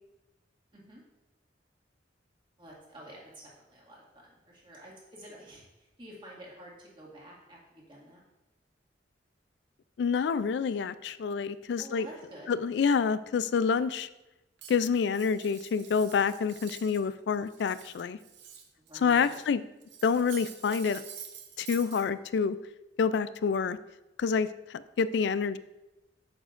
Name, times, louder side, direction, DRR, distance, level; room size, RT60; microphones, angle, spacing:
voice 1, 0.7-1.0 2.6-8.2 11.8-12.6 18.8-19.4, equal, 30° right, -4 dB, 2.0 m, -49 dB
voice 2, 10.0-12.1 12.5-14.1 14.7-18.2 18.9-19.6 20.0-21.0 21.6-22.6 23.0-23.8 24.2-25.6, left 6 dB, 70° left, 15 dB, 0.3 m, -27 dB
Cutlery silverware, 14.6-17.1 17.3-19.5 19.8-22.1, right 8 dB, 75° right, 0.7 m, -48 dB
8.0 x 7.1 x 2.5 m, 0.98 s
head